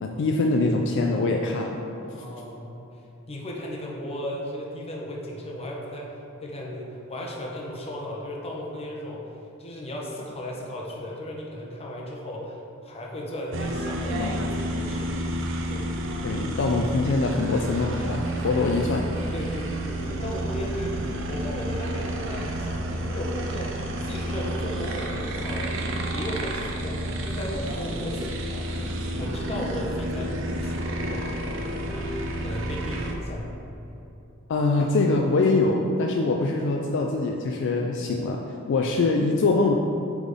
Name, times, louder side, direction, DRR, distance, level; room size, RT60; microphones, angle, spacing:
voice 1, 0.0-1.8 14.1-14.3 16.2-19.1 34.5-38.4 38.7-39.7, left 3 dB, 60° left, 2 dB, 0.4 m, -23 dB
voice 2, 2.0-2.6 3.3-6.1 6.4-9.2 9.6-12.6 12.8-15.1 15.7-15.8 19.3-28.7 29.2-33.6 33.8-34.0 38.7-38.8, left 1 dB, 30° left, -2 dB, 0.8 m, -35 dB
sound 1, 13.5-33.1, right 1 dB, 65° right, 0.6 m, -30 dB
7.5 x 3.6 x 3.6 m, 2.8 s
head